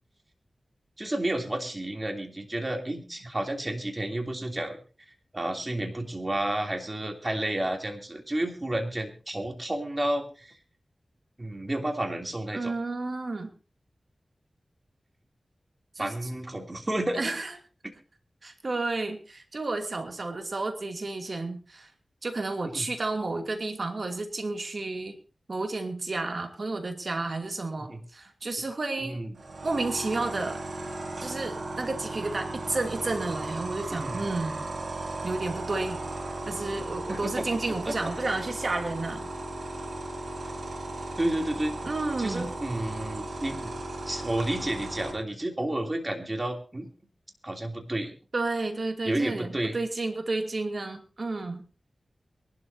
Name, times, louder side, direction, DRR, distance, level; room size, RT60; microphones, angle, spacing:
voice 1, 1.0-4.8 5.3-10.6 11.4-12.7 16.0-17.3 22.6-22.9 27.9-28.0 29.0-29.3 33.9-34.2 37.1-37.5 37.9-38.0 41.2-41.8 42.2-43.7 44.1-46.9 47.4-48.1 49.0-49.8, right 1 dB, 30° right, 3 dB, 3.1 m, -31 dB
voice 2, 12.5-13.5 16.0-16.1 17.1-17.5 18.4-21.9 22.2-25.2 25.5-29.2 29.6-30.6 31.2-34.7 35.2-36.0 36.5-39.3 41.8-42.5 48.3-51.7, right 3 dB, 55° right, 4 dB, 2.7 m, -31 dB
sound 1, 29.4-45.1, right 2 dB, 75° right, 4.7 m, -36 dB
23.5 x 12.0 x 2.8 m, 0.34 s
cardioid pair, 55°, 0 cm